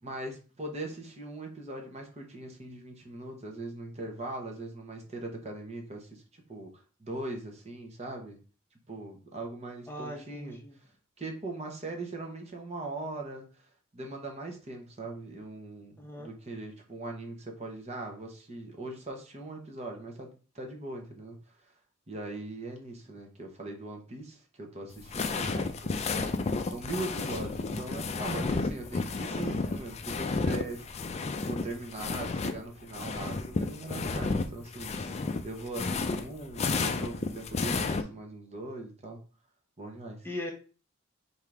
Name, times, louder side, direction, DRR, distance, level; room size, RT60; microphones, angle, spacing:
voice 1, 0.0-6.7 7.0-8.4 8.9-10.6 11.2-13.7 13.9-20.3 20.5-21.7 22.1-26.0 26.6-30.9 31.2-39.2 39.8-40.3, right 2 dB, 30° right, 2 dB, 1.0 m, -40 dB
voice 2, 9.9-10.8 16.0-16.3 40.2-40.5, left 1 dB, 10° left, 1 dB, 0.8 m, -39 dB
sound 1, 24.9-32.6 32.8-38.0, left 3 dB, 30° left, 0.4 m, -32 dB
3.6 x 2.8 x 4.7 m, 0.37 s
head